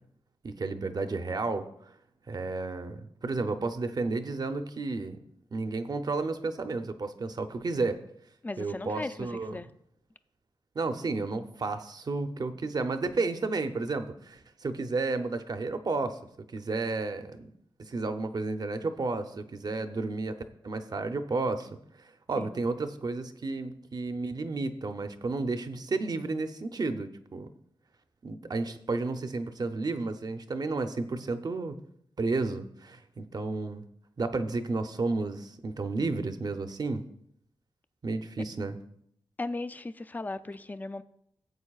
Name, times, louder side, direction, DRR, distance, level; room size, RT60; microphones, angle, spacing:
voice 1, 0.4-1.7 2.3-5.2 5.5-8.0 8.6-9.6 10.7-16.2 16.5-17.5 17.8-20.4 20.6-21.7 22.3-27.5 28.2-31.8 32.2-33.8 34.2-37.0 38.0-38.8, right 3 dB, 45° right, 9 dB, 0.7 m, -32 dB
voice 2, 8.4-9.7 22.4-22.6 39.4-41.0, left 2 dB, 20° left, 13 dB, 0.4 m, -37 dB
16.0 x 8.0 x 2.4 m, 0.72 s
wide cardioid pair, 120°, 9 cm